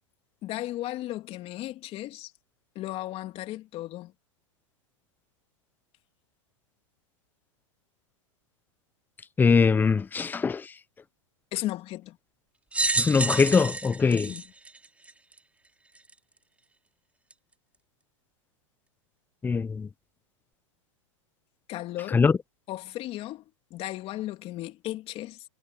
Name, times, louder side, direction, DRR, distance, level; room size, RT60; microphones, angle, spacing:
voice 1, 0.4-2.3 2.7-4.1 11.5-12.2 14.1-14.4 21.7-22.2 22.7-23.4 23.7-25.4, left 15 dB, 35° left, 3.1 m, -35 dB
voice 2, 9.4-10.6 13.0-14.3 19.4-19.9 22.1-22.4, left 5 dB, 10° left, 0.7 m, -22 dB
sound 1, 12.7-15.4 16.1-16.2 17.3-17.4, right 3 dB, 10° right, 3.8 m, -29 dB
hypercardioid pair, 125°, 17 cm